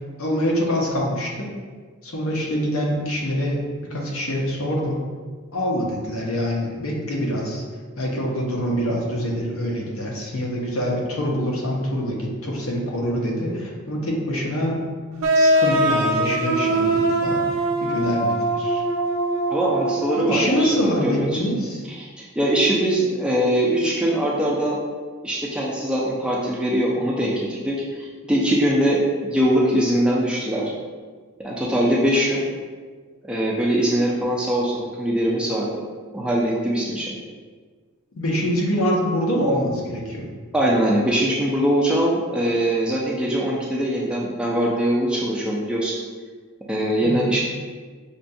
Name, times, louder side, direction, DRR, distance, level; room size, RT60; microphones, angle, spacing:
voice 1, 0.2-1.5 2.0-3.6 3.9-5.0 5.5-7.6 8.0-14.8 15.3-17.4 17.8-18.8 20.3-21.8 38.1-40.3 47.0-47.3, equal, 75° left, -2 dB, 0.7 m, -25 dB
sound 1, 15.2-20.7, right 1 dB, 80° right, 0.4 m, -22 dB
voice 2, 19.5-21.3 21.9-24.8 25.2-30.7 31.4-32.4 33.3-35.7 36.1-37.2 40.5-45.9 46.7-47.4, right 1 dB, 5° right, -4 dB, 0.3 m, -22 dB
5.1 x 2.3 x 2.6 m, 1.5 s
head